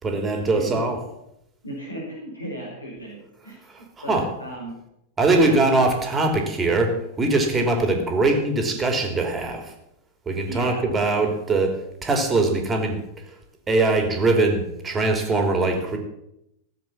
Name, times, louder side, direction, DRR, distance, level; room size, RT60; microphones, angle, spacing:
voice 1, 0.0-1.0 3.7-3.8 4.1-4.3 5.2-9.7 10.3-11.8 12.0-13.0 13.7-16.0, right 2 dB, 20° right, 4 dB, 3.1 m, -21 dB
voice 2, 1.6-3.6 4.0-4.8 5.2-5.6 10.5-10.8, right 1 dB, 80° left, -2 dB, 4.8 m, -35 dB
16.0 x 7.8 x 7.2 m, 0.81 s
figure-of-eight pair, 90°, 0 cm